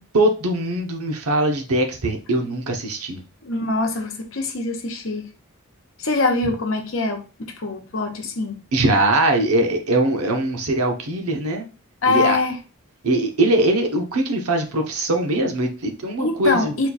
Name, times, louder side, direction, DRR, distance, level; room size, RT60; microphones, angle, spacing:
voice 1, 0.1-3.2 8.7-11.7 12.1-12.4 13.0-16.7, right 1 dB, 90° right, 3 dB, 0.9 m, -21 dB
voice 2, 3.4-5.3 6.0-8.6 12.0-12.6 16.2-16.9, left 3 dB, 60° left, 3 dB, 0.8 m, -23 dB
4.3 x 2.3 x 4.0 m, 0.33 s
head